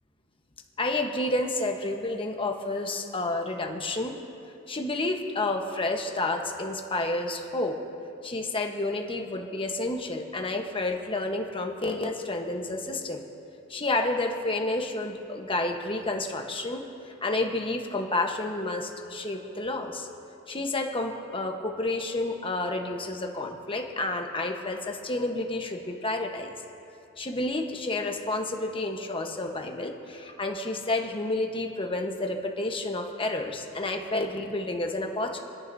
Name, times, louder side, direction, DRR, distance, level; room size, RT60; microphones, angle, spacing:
voice 1, 0.8-4.2 4.7-7.8 8.2-13.2 13.7-16.8 17.2-20.1 20.5-26.5 27.2-35.4, left 2 dB, 25° left, 2 dB, 1.1 m, -30 dB
28.5 x 10.5 x 2.7 m, 2.8 s
head